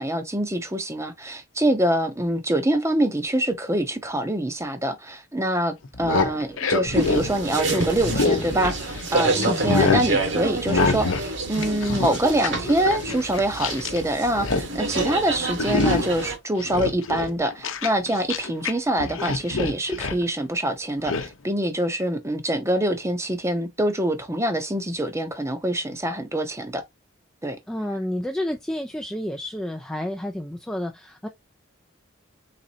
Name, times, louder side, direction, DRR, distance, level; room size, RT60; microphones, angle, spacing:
voice 1, 0.0-26.8 27.4-27.6, right 1 dB, 15° right, 0.7 m, -25 dB
sound 1, 5.8-9.1 9.4-10.1 10.7-11.3 11.5-14.0 14.3-14.7 14.9-15.2 15.6-16.2 16.6-18.7 19.0-20.2 21.1-21.3, left 3 dB, 75° left, 0.8 m, -25 dB
sound 2, 6.9-16.4, right 2 dB, 60° right, 1.4 m, -28 dB
voice 2, 9.3-9.7 27.7-31.3, left 1 dB, 5° left, 0.3 m, -30 dB
4.2 x 3.8 x 2.7 m
head